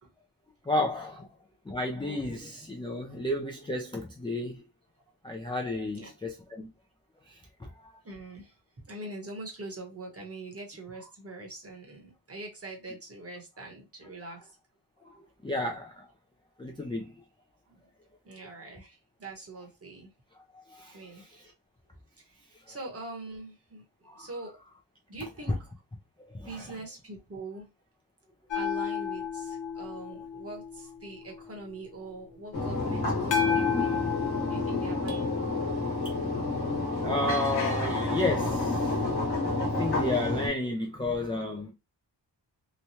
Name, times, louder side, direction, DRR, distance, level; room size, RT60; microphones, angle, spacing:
voice 1, 0.7-1.3 1.7-4.6 5.2-6.7 7.3-7.9 15.0-16.1 16.6-17.1 20.7-21.5 22.7-22.8 24.1-24.3 26.2-26.8 37.0-39.0 39.6-41.7, left 1 dB, 10° left, 0.4 m, -32 dB
voice 2, 8.0-14.5 18.2-20.1 20.9-21.4 22.2-22.3 22.7-23.8 24.2-24.5 25.1-25.5 26.4-27.7 28.5-34.2 34.5-35.3, right 2 dB, 35° right, 1.0 m, -43 dB
sound 1, 28.5-31.3 33.3-36.5 39.4-39.5, left 7 dB, 90° left, 0.9 m, -32 dB
sound 2, 32.5-40.5, left 2 dB, 65° left, 1.1 m, -29 dB
sound 3, 35.1-36.6, left 5 dB, 55° right, 0.7 m, -45 dB
3.1 x 2.2 x 2.7 m
wide cardioid pair, 130°, 43 cm